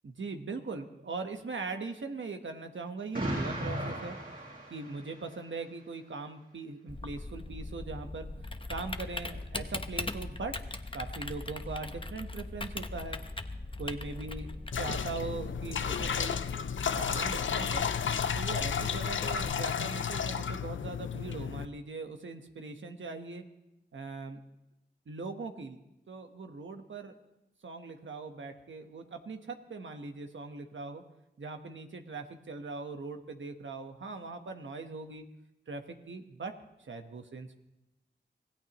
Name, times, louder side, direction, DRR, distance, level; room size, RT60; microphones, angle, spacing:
voice 1, 0.0-4.2 4.7-10.5 10.9-13.2 13.8-16.4 16.8-17.9 18.3-23.4 23.9-24.4 25.1-25.8 26.1-27.1 27.6-31.0 31.4-35.3 35.7-36.5 36.8-37.6, right 3 dB, 90° right, 5 dB, 1.2 m, -40 dB
Explosion, 3.1-5.3, right 1 dB, 50° right, 7.7 m, -36 dB
Typing, 6.9-19.5, left 2 dB, 25° left, 0.9 m, -40 dB
sound 1, 14.7-21.7, left 7 dB, 90° left, 0.5 m, -32 dB
25.5 x 16.5 x 3.0 m, 0.91 s
wide cardioid pair, 50°, 19 cm